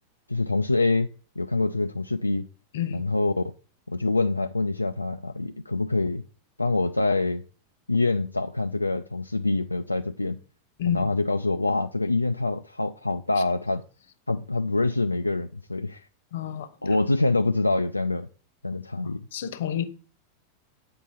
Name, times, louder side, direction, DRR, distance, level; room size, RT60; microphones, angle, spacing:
voice 1, 0.3-1.1 1.4-2.5 2.9-3.5 3.9-6.2 6.6-7.4 7.9-10.4 10.9-13.8 14.3-16.1 16.8-18.3 18.6-19.3, left 2 dB, 85° left, 0.3 m, -25 dB
voice 2, 2.7-3.0 10.8-11.1 16.3-16.7 19.0-19.9, left 11 dB, 60° left, 0.8 m, -30 dB
8.6 x 4.3 x 5.4 m
figure-of-eight pair, 90°, 0 cm